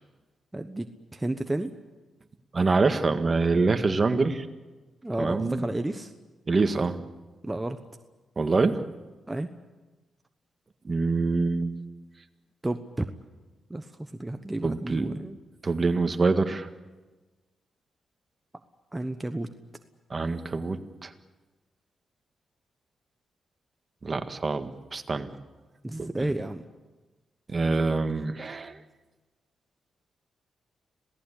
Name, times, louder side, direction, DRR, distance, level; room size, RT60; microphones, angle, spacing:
voice 1, 0.5-1.7 5.0-6.1 7.4-7.8 9.3-9.5 12.6-13.1 13.7-15.4 18.9-19.5 25.8-26.6, right 1 dB, 15° right, 7 dB, 1.1 m, -31 dB
voice 2, 2.5-4.5 5.2-5.6 6.5-7.0 8.3-8.9 10.8-11.7 14.6-15.1 15.6-16.7 20.1-21.1 24.0-25.3 26.0-26.3 27.5-28.8, right 3 dB, 35° right, 8 dB, 1.7 m, -25 dB
27.0 x 18.0 x 8.5 m, 1.2 s
cardioid pair, 85°, 0 cm